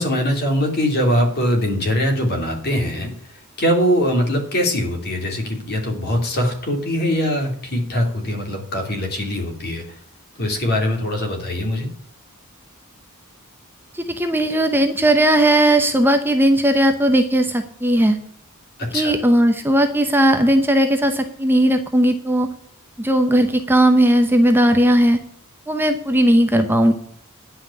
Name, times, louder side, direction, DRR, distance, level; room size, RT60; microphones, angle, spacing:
voice 1, 0.0-3.1 3.6-9.8 10.4-11.9 18.8-19.2, equal, 45° left, 2 dB, 2.8 m, -22 dB
voice 2, 13.9-18.2 18.9-22.5 23.0-25.2 25.7-26.9, right 1 dB, 10° right, 6 dB, 0.7 m, -17 dB
10.0 x 5.7 x 8.1 m, 0.64 s
head